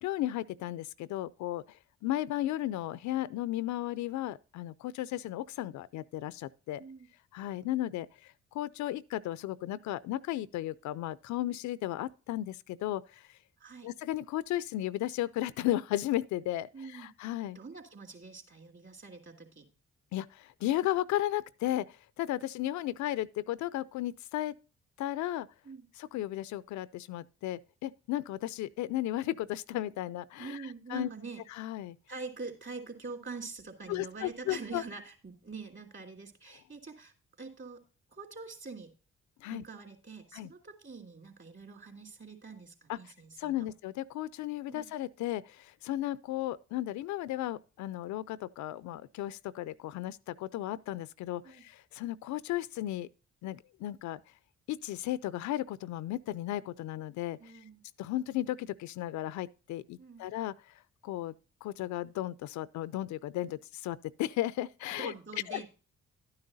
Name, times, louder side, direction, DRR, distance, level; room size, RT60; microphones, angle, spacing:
voice 1, 0.0-1.8 2.0-6.8 7.3-13.3 13.8-17.6 20.1-24.5 25.0-25.5 26.0-31.1 31.5-32.0 33.9-34.8 39.4-39.6 40.3-40.5 42.9-43.1 43.4-53.1 53.4-54.2 54.7-57.5 58.0-60.7 61.0-61.3 61.6-65.1 65.5-65.6, left 14 dB, 65° left, 0.4 m, -35 dB
voice 2, 13.6-13.9 16.7-17.1 17.5-19.7 25.6-25.9 30.4-31.4 32.1-37.1 37.4-37.8 38.1-38.9 39.5-43.5 44.7-44.9 51.4-51.6 57.4-57.8 60.0-60.3 65.0-65.7, right 4 dB, 40° right, 3.1 m, -45 dB
11.5 x 9.6 x 2.6 m
hypercardioid pair, 45°, 31 cm